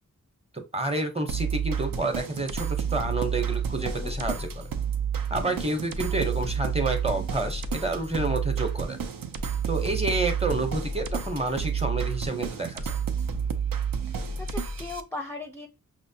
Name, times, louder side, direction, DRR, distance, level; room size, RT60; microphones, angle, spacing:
voice 1, 0.5-4.7 5.3-9.0 9.7-12.8, right 2 dB, 20° right, 6 dB, 0.7 m, -29 dB
sound 1, 1.3-15.0, right 6 dB, 85° right, 0.5 m, -30 dB
voice 2, 3.8-4.2 14.0-15.7, left 2 dB, 5° left, 3 dB, 0.4 m, -38 dB
5.7 x 2.1 x 2.7 m, 0.26 s
wide cardioid pair, 60°, 33 cm